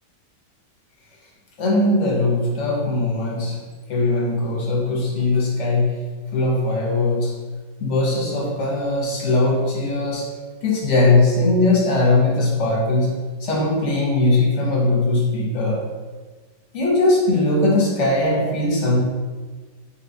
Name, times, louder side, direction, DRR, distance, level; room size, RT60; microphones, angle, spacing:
voice 1, 1.6-3.6 3.9-6.0 6.3-7.3 7.8-10.3 10.6-13.1 13.4-15.8 16.7-19.0, left 2 dB, 55° left, -3 dB, 0.9 m, -20 dB
4.3 x 3.4 x 2.6 m, 1.4 s
omnidirectional pair, 1.8 m